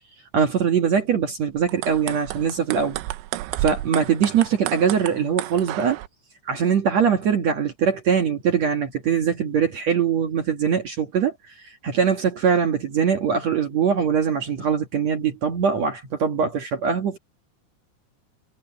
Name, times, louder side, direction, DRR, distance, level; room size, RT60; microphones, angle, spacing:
voice 1, 0.3-3.0 3.6-6.0 6.4-11.3 11.8-17.2, right 7 dB, 60° right, 1.8 m, -22 dB
sound 1, 1.6-6.1, right 16 dB, 85° right, 3.3 m, -31 dB
omnidirectional pair, 5.4 m